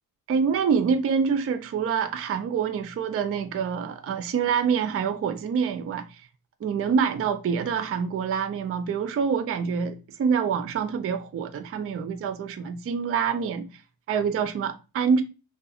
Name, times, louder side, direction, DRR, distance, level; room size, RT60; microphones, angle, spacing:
voice 1, 0.3-6.2 6.6-13.7 14.1-15.2, right 6 dB, 35° right, 0.4 m, -26 dB
2.6 x 2.3 x 2.4 m
supercardioid pair, 60°, 44 cm